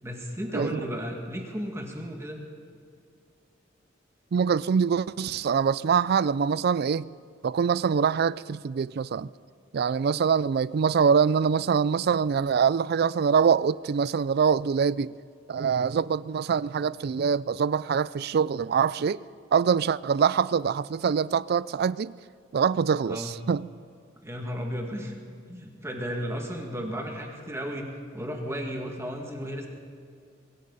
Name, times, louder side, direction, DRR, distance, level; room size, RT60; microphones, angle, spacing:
voice 1, 0.0-2.4 23.1-23.3 24.2-25.2 25.5-29.7, equal, 15° right, 2.1 m, -34 dB
voice 2, 4.3-7.1 7.4-9.3 9.7-15.1 15.5-19.2 19.5-22.1 22.5-23.7, right 6 dB, 55° right, 0.4 m, -24 dB
22.0 x 16.0 x 4.1 m
head